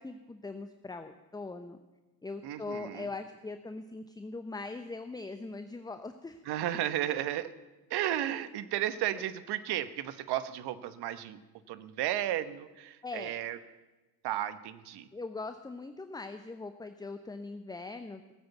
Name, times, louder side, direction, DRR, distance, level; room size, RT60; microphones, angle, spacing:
voice 1, 0.0-1.8 2.2-6.4 8.3-8.5 13.0-13.4 15.1-18.3, left 3 dB, 10° left, 9 dB, 0.7 m, -41 dB
voice 2, 2.4-3.1 6.5-7.5 7.9-11.4 11.7-13.6 14.2-15.1, right 12 dB, 55° right, 13 dB, 1.1 m, -33 dB
17.0 x 7.9 x 8.1 m, 1.1 s
hypercardioid pair, 65°, 48 cm